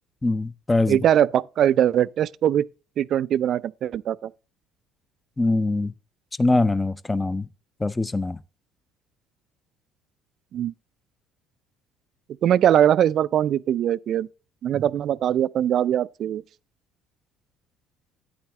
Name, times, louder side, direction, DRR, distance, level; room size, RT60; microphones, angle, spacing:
voice 1, 0.2-1.0 5.4-5.9 6.4-7.5 7.8-8.4, left 2 dB, 15° left, 0.6 m, -23 dB
voice 2, 0.9-2.7 3.0-4.3 10.5-10.7 12.4-14.3 14.6-16.4, right 10 dB, 50° right, 0.3 m, -21 dB
9.3 x 8.6 x 3.1 m
hypercardioid pair, 55°, 0 cm